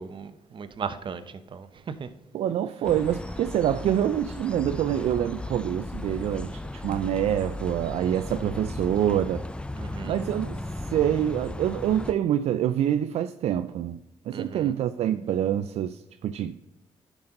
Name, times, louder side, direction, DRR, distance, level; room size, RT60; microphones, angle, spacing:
voice 1, 0.0-2.1 9.8-10.2 14.3-14.7, right 6 dB, 45° right, 0.8 m, -37 dB
voice 2, 2.3-9.5 10.1-10.6 10.9-14.0 14.3-16.6, right 10 dB, 70° right, 0.4 m, -26 dB
sound 1, 2.8-12.1, left 2 dB, 10° left, 0.4 m, -36 dB
10.5 x 6.1 x 3.9 m
cardioid pair, 75°, 11 cm